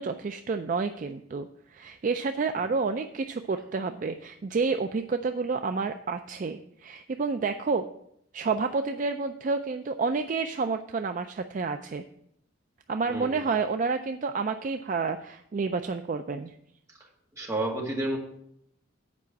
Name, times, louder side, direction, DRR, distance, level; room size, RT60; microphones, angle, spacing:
voice 1, 0.0-7.9 8.3-12.0 12.9-16.5, right 4 dB, 40° right, 7 dB, 0.3 m, -29 dB
voice 2, 13.1-13.4 17.4-18.2, right 1 dB, 15° right, -3 dB, 1.9 m, -30 dB
8.3 x 4.9 x 7.4 m, 0.75 s
head